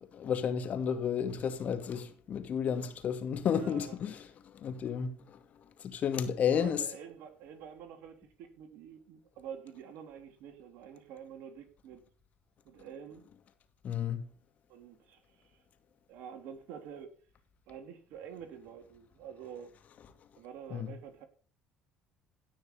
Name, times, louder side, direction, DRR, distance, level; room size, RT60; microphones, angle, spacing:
voice 1, 0.2-4.2 4.5-5.4 5.8-6.8 13.8-14.2 20.7-20.9, left 7 dB, 50° left, 2.6 m, -32 dB
voice 2, 3.5-4.0 6.4-12.0 12.6-13.2 14.7-15.6 16.1-17.2 17.7-19.7 20.4-21.2, right 8 dB, 70° right, 3.0 m, -47 dB
17.5 x 6.5 x 7.0 m
hypercardioid pair, 65°, 3 cm